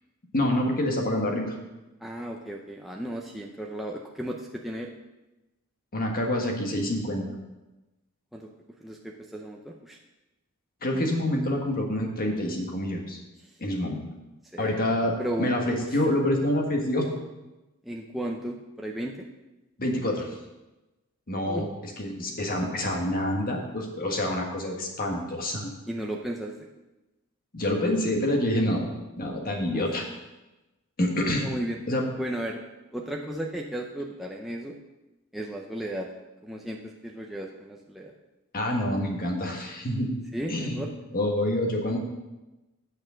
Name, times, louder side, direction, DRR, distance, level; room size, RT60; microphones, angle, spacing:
voice 1, 0.3-1.5 5.9-7.3 10.8-13.2 13.6-14.0 14.6-17.1 19.8-20.3 21.3-25.7 27.5-28.9 29.2-30.0 31.0-31.5 31.9-32.0 38.5-40.2 40.5-40.8 41.1-42.0, left 1 dB, 40° left, 1 dB, 1.6 m, -27 dB
voice 2, 2.0-4.9 8.3-8.5 8.8-10.0 14.5-14.8 15.2-15.5 17.8-19.2 21.5-21.7 25.9-26.6 29.7-29.9 31.4-31.8 32.2-32.6 32.9-34.8 35.3-36.1 36.4-38.1 40.3-40.9, right 1 dB, ahead, -1 dB, 0.6 m, -34 dB
8.6 x 6.5 x 6.3 m, 1.0 s
head